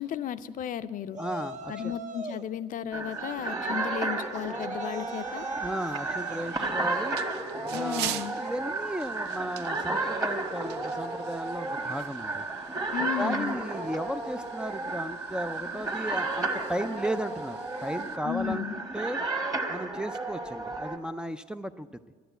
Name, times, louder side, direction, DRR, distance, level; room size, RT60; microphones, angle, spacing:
voice 1, 0.0-1.2 1.7-5.5 7.7-8.4 12.9-13.6 18.2-18.8, left 9 dB, 50° left, 12 dB, 0.5 m, -34 dB
Yell, 1.1-2.5 3.2-6.5, right 5 dB, 45° right, 0.8 m, -41 dB
voice 2, 1.2-1.9 5.6-7.2 7.7-12.4 13.2-19.2 19.7-22.0, equal, 5° right, 7 dB, 0.4 m, -35 dB
sound 1, 2.9-21.0, right 2 dB, 20° right, 1.4 m, -33 dB
sound 2, 5.7-18.2, right 11 dB, 85° right, 0.5 m, -44 dB
11.0 x 10.0 x 8.0 m, 1.5 s
cardioid pair, 110°, 17 cm